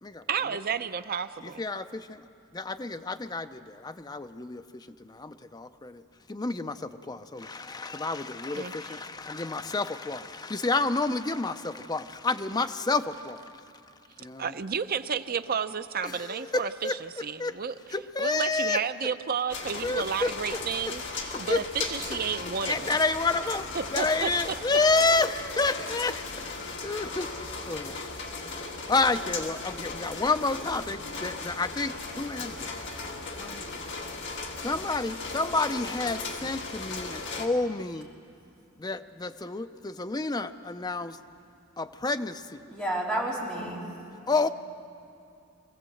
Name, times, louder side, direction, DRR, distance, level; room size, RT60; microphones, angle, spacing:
voice 1, 0.3-1.6 8.5-8.7 14.4-17.7 18.2-22.8 23.7-24.3, right 6 dB, 45° right, 11 dB, 0.6 m, -31 dB
voice 2, 1.4-2.3 2.5-13.6 14.2-14.6 16.0-17.6 17.9-18.8 19.8-20.6 20.9-21.0 21.3-21.6 22.6-23.6 23.9-32.9 33.4-33.8 34.6-38.1 38.8-41.2 41.8-42.7 44.3-44.5, left 3 dB, 20° left, 9 dB, 0.5 m, -30 dB
sound 1, 19.5-37.5, left 3 dB, 55° left, 1.8 m, -37 dB
voice 3, 42.7-43.8, right 1 dB, 5° left, -4 dB, 3.5 m, -30 dB
24.0 x 15.5 x 7.8 m, 2.6 s
head